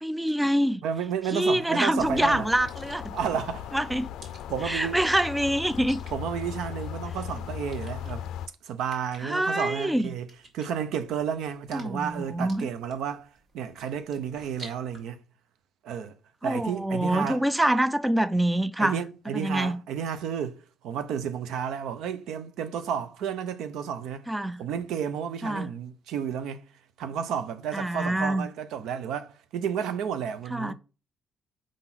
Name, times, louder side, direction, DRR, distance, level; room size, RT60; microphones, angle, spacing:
voice 1, 0.0-0.8 1.3-3.1 3.7-4.1 4.6-6.0 9.2-10.1 11.7-12.7 16.4-19.0 19.3-19.8 24.3-24.6 25.4-25.7 27.7-28.5 30.5-30.7, right 1 dB, 10° right, 0.3 m, -25 dB
voice 2, 0.8-2.5 3.1-3.7 4.5-5.0 6.1-8.3 8.6-10.3 10.5-13.3 13.5-15.2 15.8-16.1 16.4-17.4 18.8-24.3 24.6-26.6 27.0-30.7, right 8 dB, 90° right, 0.6 m, -32 dB
sound 1, 1.0-15.0, right 2 dB, 50° right, 2.1 m, -54 dB
sound 2, 2.0-8.5, left 9 dB, 85° left, 0.4 m, -37 dB
5.0 x 3.9 x 5.7 m
cardioid pair, 120°, 0 cm